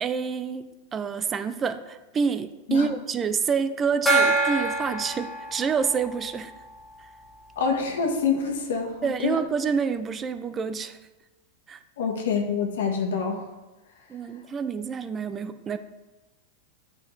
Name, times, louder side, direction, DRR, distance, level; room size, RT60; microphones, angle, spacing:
voice 1, 0.0-6.5 7.0-7.1 9.0-11.0 11.7-11.8 14.1-15.8, right 6 dB, 25° right, 11 dB, 0.4 m, -28 dB
Gong, 4.1-7.3, right 3 dB, 10° left, 1.5 m, -26 dB
voice 2, 7.6-9.4 12.0-13.5, left 5 dB, 80° left, 3 dB, 1.3 m, -26 dB
9.1 x 4.3 x 3.3 m, 1.1 s
hypercardioid pair, 125°, 0 cm